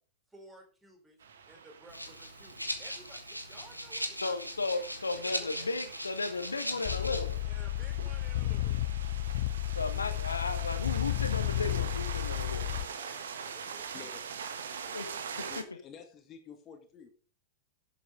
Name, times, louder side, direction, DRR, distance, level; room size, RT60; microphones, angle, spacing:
voice 1, 0.3-4.8 5.1-5.7 7.5-9.0 10.1-10.2 12.5-15.4, right 1 dB, 10° right, 3 dB, 4.0 m, -56 dB
sound 1, 1.2-15.6, right 6 dB, 65° right, 1.4 m, -44 dB
Rattle (instrument), 1.9-7.4, equal, 90° right, 1.5 m, -39 dB
voice 2, 4.2-7.4 9.8-12.6 14.9-15.0 15.6-15.7, left 3 dB, 80° left, 9 dB, 1.2 m, -34 dB
sound 2, 6.8-12.8, left 15 dB, 55° left, 0.7 m, -32 dB
voice 3, 13.9-14.5 15.5-17.1, left 7 dB, 30° left, 5 dB, 1.9 m, -50 dB
11.5 x 7.7 x 5.1 m, 0.40 s
figure-of-eight pair, 90°, 0 cm